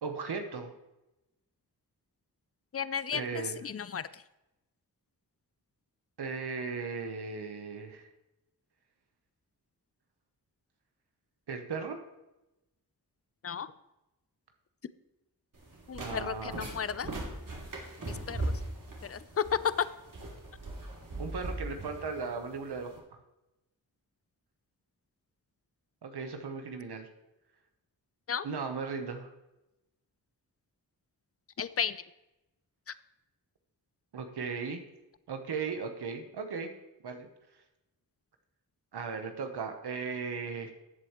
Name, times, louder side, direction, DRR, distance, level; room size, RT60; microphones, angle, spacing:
voice 1, 0.0-0.7 3.1-3.5 6.2-8.1 11.5-12.0 16.0-16.7 21.2-23.2 26.0-27.1 28.4-29.3 34.1-34.8 35.3-36.7 37.0-37.3 38.9-40.7, right 5 dB, 85° right, 6 dB, 1.0 m, -37 dB
voice 2, 2.7-4.2 13.4-13.7 15.9-17.1 18.1-18.5 19.0-19.9 28.3-28.5 31.6-32.0 32.9-33.0, left 7 dB, 40° left, 15 dB, 0.5 m, -33 dB
sound 1, 15.5-23.0, right 2 dB, 55° right, 2.7 m, -39 dB
14.0 x 8.0 x 3.1 m, 0.95 s
wide cardioid pair, 65°, 39 cm